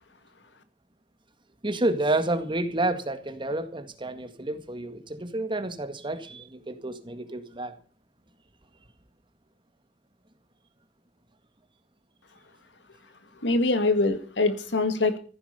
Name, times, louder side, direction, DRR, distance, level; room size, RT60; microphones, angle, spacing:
voice 1, 1.6-7.7, right 2 dB, 30° right, 1.8 m, -29 dB
voice 2, 13.4-15.2, left 2 dB, 90° left, 2.0 m, -24 dB
15.0 x 9.7 x 6.8 m
head